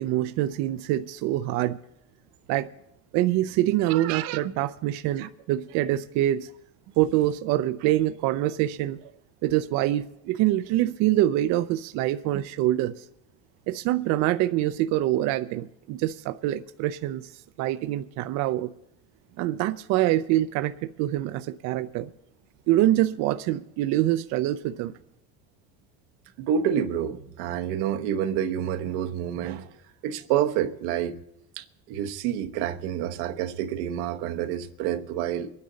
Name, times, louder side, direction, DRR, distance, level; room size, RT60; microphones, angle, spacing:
voice 1, 0.0-1.8 2.5-2.7 3.1-6.5 7.0-9.1 9.4-13.0 13.7-18.7 19.4-22.1 22.7-24.9, right 14 dB, 55° right, 0.5 m, -25 dB
voice 2, 3.9-4.5 5.2-5.3 26.4-29.7 30.0-31.2 31.6-35.5, right 9 dB, 85° right, 1.1 m, -28 dB
23.5 x 9.6 x 4.0 m
cardioid pair, 160°, 34 cm